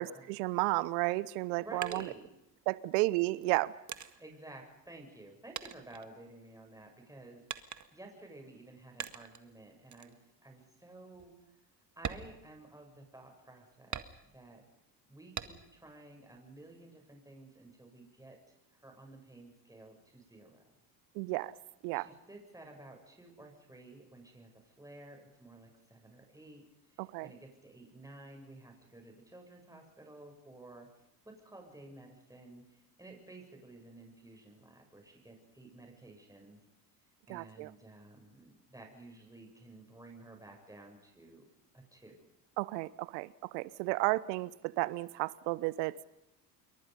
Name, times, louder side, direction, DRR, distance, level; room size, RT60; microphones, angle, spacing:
voice 1, 0.0-2.1 2.7-3.7 21.1-21.5 21.8-22.1 27.0-27.3 37.3-37.7 42.6-46.0, right 21 dB, 70° right, 19 dB, 1.1 m, -33 dB
sound 1, 1.3-2.8 3.4-5.3 5.6-6.7 7.5-8.1 9.0-9.5 9.9-10.2 10.6-10.7 11.1-11.3 11.9-13.1 13.9-14.6 15.4-15.9 16.3-17.1, right 8 dB, 35° right, 1.8 m, -44 dB
voice 2, 1.6-2.3 4.2-11.3 12.0-14.6 15.1-20.6 21.9-26.6 26.9-30.9 31.2-36.6 37.3-41.5 41.7-42.2, right 2 dB, 5° right, 2 dB, 7.9 m, -53 dB
28.5 x 22.5 x 5.4 m, 0.89 s
hypercardioid pair, 70°, 49 cm